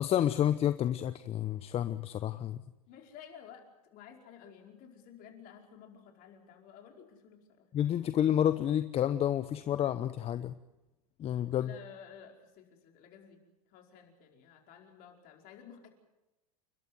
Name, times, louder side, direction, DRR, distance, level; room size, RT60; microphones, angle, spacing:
voice 1, 0.0-2.6 7.7-10.6 11.2-11.7, left 10 dB, 30° left, 12 dB, 0.9 m, -29 dB
voice 2, 2.9-7.7 11.6-13.4 13.7-15.9, left 8 dB, 50° left, 3 dB, 5.0 m, -53 dB
29.5 x 12.5 x 9.5 m, 0.99 s
hypercardioid pair, 100°, 19 cm